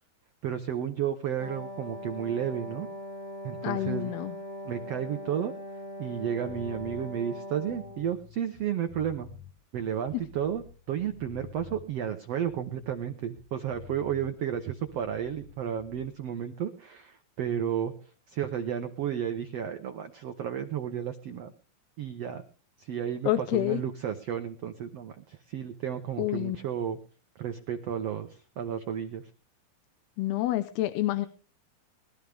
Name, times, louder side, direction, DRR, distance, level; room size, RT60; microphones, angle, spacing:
voice 1, 0.4-2.9 3.4-4.1 4.6-5.5 6.0-9.3 9.7-17.9 18.3-21.5 22.0-22.4 22.8-27.0 27.3-29.2, right 9 dB, 85° right, 7 dB, 1.4 m, -32 dB
Wind instrument woodwind instrument, 1.4-8.1, left 1 dB, 20° left, 2.8 m, -41 dB
voice 2, 3.6-4.3 23.3-23.8 26.2-26.6 30.2-31.3, left 15 dB, 90° left, 10 dB, 2.8 m, -28 dB
sound 1, 6.5-7.1 7.6-10.7 11.0-11.9 12.4-15.5 15.8-16.1, left 8 dB, 50° left, 6.1 m, -49 dB
21.5 x 13.0 x 3.5 m, 0.39 s
omnidirectional pair, 4.4 m